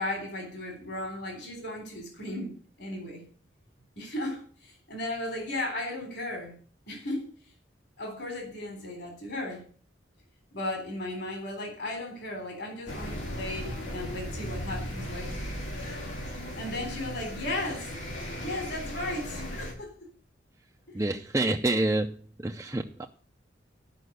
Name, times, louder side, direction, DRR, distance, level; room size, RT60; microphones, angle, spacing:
voice 1, 0.0-3.2 4.0-6.6 6.9-7.3 8.0-9.7 10.5-15.3 16.5-17.9 18.4-20.0, left 1 dB, 60° left, 3.6 m, -35 dB
sound 1, 12.9-19.7, equal, 90° left, 4.3 m, -37 dB
voice 2, 20.9-22.1 22.4-23.1, right 2 dB, 15° right, 0.5 m, -27 dB
11.5 x 5.8 x 8.0 m
head